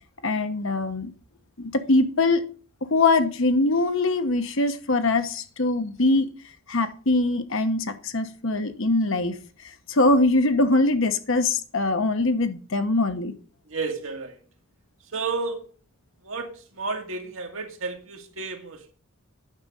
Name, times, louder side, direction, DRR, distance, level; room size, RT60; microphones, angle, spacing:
voice 1, 0.2-1.1 1.6-2.4 2.8-6.3 6.7-9.3 9.9-13.3, left 2 dB, 65° left, 9 dB, 1.1 m, -22 dB
voice 2, 13.7-14.4 15.0-15.7 16.2-18.9, right 4 dB, 70° right, 4 dB, 2.0 m, -32 dB
9.5 x 6.3 x 5.5 m, 0.39 s
head